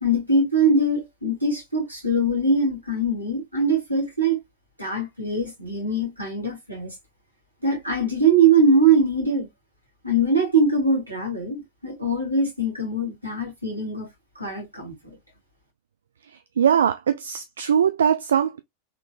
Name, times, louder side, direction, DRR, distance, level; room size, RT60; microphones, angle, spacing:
voice 1, 0.0-4.4 4.8-6.9 7.6-9.5 10.0-14.1 14.4-14.9, right 2 dB, 85° right, 2.0 m, -22 dB
voice 2, 16.6-18.6, right 8 dB, 65° right, 0.3 m, -21 dB
3.9 x 3.1 x 2.3 m
figure-of-eight pair, 90°, 0 cm